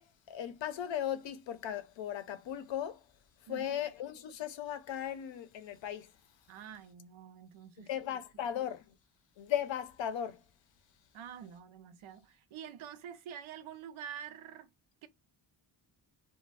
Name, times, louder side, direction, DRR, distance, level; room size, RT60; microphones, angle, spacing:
voice 1, 0.0-3.0 3.5-6.1 7.9-8.8 9.4-10.4, left 10 dB, 70° left, 0.6 m, -37 dB
voice 2, 3.5-3.9 6.5-8.5 11.1-14.7 15.0-15.1, right 8 dB, 90° right, 0.6 m, -47 dB
2.5 x 2.2 x 3.2 m
wide cardioid pair, 155°, 47 cm